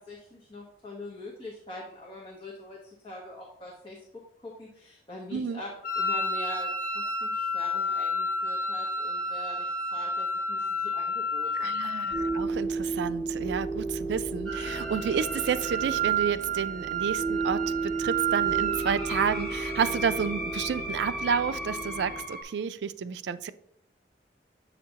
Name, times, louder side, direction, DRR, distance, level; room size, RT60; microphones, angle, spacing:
voice 1, 0.0-4.0 4.4-11.7, left 2 dB, 30° left, -4 dB, 1.1 m, -43 dB
Wind instrument woodwind instrument, 5.8-12.4, left 3 dB, 50° left, 0.8 m, -30 dB
voice 2, 11.6-23.5, right 7 dB, 75° right, 14 dB, 0.3 m, -30 dB
sound 1, 12.1-22.2, right 3 dB, 50° right, 2.3 m, -34 dB
sound 2, 14.5-22.4, right 7 dB, 5° left, 2.6 m, -32 dB
8.3 x 5.8 x 2.8 m, 0.72 s
head